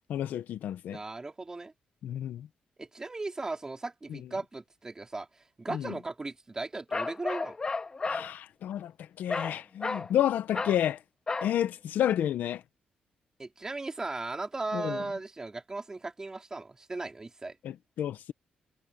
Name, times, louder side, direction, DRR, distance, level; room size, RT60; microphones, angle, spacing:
voice 1, 0.1-1.0 2.0-2.5 4.1-4.2 5.7-5.9 8.0-11.0 11.4-12.6 14.7-15.0 17.6-18.3, left 11 dB, 80° left, 0.9 m, -30 dB
voice 2, 0.9-1.7 2.8-7.6 13.4-17.6, right 3 dB, 20° right, 3.9 m, -37 dB
Bark, 6.9-8.3 9.3-9.6 9.8-10.1 10.5-10.8 11.3-11.5, left 4 dB, 30° left, 1.9 m, -32 dB
cardioid pair, 110°, 3 cm